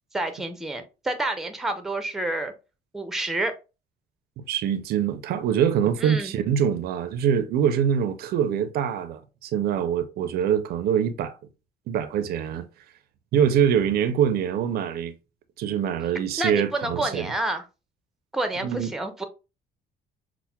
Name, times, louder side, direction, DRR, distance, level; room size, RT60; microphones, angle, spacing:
voice 1, 0.1-2.5 2.9-3.6 6.0-6.3 16.4-17.6 18.3-19.2, right 2 dB, ahead, 0.5 m, -28 dB
voice 2, 4.4-11.4 11.9-12.7 13.3-15.1 15.6-17.3 18.6-18.9, right 8 dB, 65° right, 0.4 m, -24 dB
5.6 x 2.0 x 2.2 m
cardioid pair, 110°, 17 cm